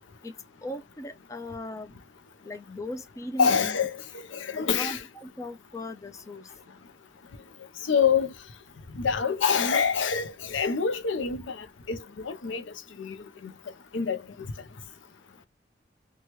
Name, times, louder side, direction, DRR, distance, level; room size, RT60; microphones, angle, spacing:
voice 1, 0.6-1.9 2.4-3.8 4.5-6.5, left 1 dB, 15° left, 0.4 m, -38 dB
voice 2, 3.4-4.0 4.3-5.0 7.9-8.3 8.9-12.6 13.0-13.2 13.4-13.5 13.9-14.2, left 6 dB, 90° left, 0.6 m, -26 dB
2.9 x 2.3 x 3.0 m
head